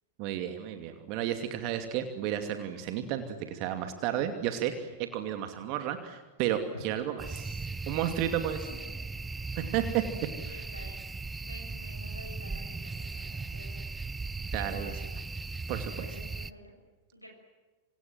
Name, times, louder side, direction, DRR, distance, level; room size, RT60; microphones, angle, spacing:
voice 1, 0.2-7.6 7.9-8.6 9.5-9.8 10.4-10.5 14.5-14.9 15.7-16.1, right 10 dB, 45° right, 7 dB, 2.7 m, -32 dB
voice 2, 6.7-7.1 8.6-9.0 9.6-10.1 10.5-11.0 11.4-13.8 14.5-15.0 15.9-16.7 17.1-17.3, equal, 90° right, 3 dB, 6.3 m, -49 dB
sound 1, 7.2-16.5, right 3 dB, 10° right, 0.9 m, -38 dB
28.0 x 28.0 x 7.6 m, 1.3 s
figure-of-eight pair, 90°, 0 cm